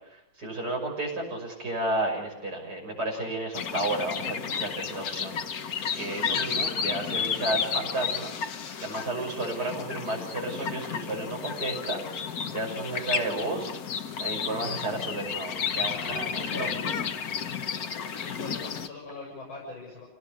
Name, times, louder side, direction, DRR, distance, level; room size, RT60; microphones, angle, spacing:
voice 1, 0.1-8.3 8.8-13.7 14.2-16.7, right 2 dB, 50° right, 0 dB, 6.7 m, -32 dB
sound 1, 3.5-18.9, left 6 dB, 50° left, 1.5 m, -32 dB
voice 2, 15.7-17.5 17.8-20.0, left 3 dB, 75° left, -3 dB, 7.9 m, -44 dB
27.5 x 18.5 x 6.8 m, 0.94 s
omnidirectional pair, 2.2 m